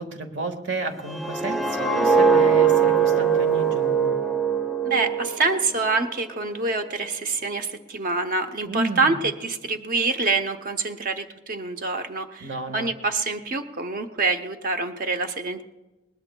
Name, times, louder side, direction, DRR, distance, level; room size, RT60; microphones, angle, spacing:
voice 1, 0.0-4.1 8.6-9.2 12.4-12.9, right 2 dB, 70° right, 6 dB, 1.5 m, -31 dB
sound 1, 1.1-6.1 6.5-6.8, right 6 dB, ahead, 0.6 m, -21 dB
voice 2, 4.8-15.6, right 3 dB, 50° right, 8 dB, 0.7 m, -26 dB
21.5 x 19.5 x 2.2 m, 1.1 s
head